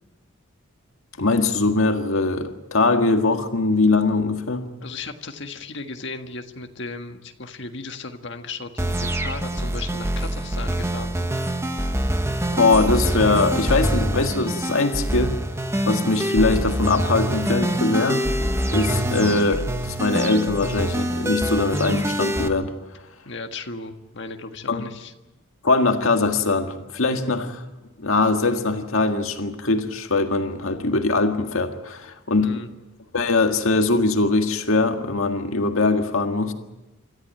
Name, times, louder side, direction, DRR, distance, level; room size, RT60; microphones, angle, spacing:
voice 1, 1.2-4.6 12.5-15.4 15.9-18.3 18.7-22.7 24.7-24.8 25.6-27.6 28.0-32.5 33.1-36.5, left 3 dB, 80° left, 5 dB, 1.8 m, -21 dB
voice 2, 4.8-11.3 23.2-25.1 32.4-32.7, left 3 dB, 55° left, 5 dB, 1.6 m, -36 dB
sound 1, 8.8-22.5, right 1 dB, 15° right, 1.0 m, -25 dB
27.5 x 14.0 x 9.1 m, 1.0 s
head